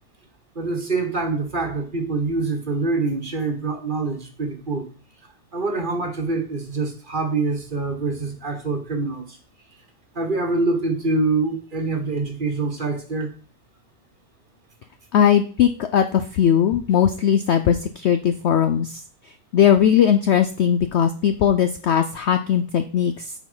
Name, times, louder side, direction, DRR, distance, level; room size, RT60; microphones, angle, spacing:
voice 1, 0.5-4.9 5.5-9.4 10.1-13.3, right 3 dB, 35° right, 3 dB, 1.3 m, -25 dB
voice 2, 15.1-19.0 19.5-23.2, left 9 dB, 65° left, 9 dB, 0.7 m, -19 dB
8.1 x 4.4 x 5.6 m, 0.40 s
omnidirectional pair, 1.6 m